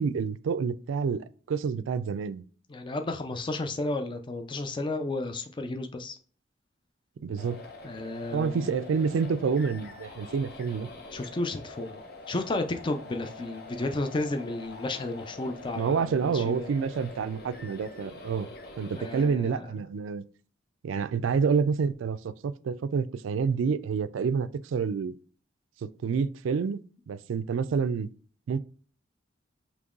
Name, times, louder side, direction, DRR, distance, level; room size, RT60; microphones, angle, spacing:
voice 1, 0.0-2.4 7.2-7.6 8.3-10.9 15.8-18.5 18.8-20.2 20.8-25.2 25.8-28.1 28.5-28.6, right 5 dB, 85° right, 0.3 m, -28 dB
voice 2, 2.7-6.2 7.8-8.8 11.1-12.0 12.3-16.7 18.9-19.8, left 2 dB, 25° left, 0.4 m, -33 dB
sound 1, 7.4-19.3, left 2 dB, 55° left, 0.9 m, -45 dB
5.3 x 3.0 x 2.4 m
head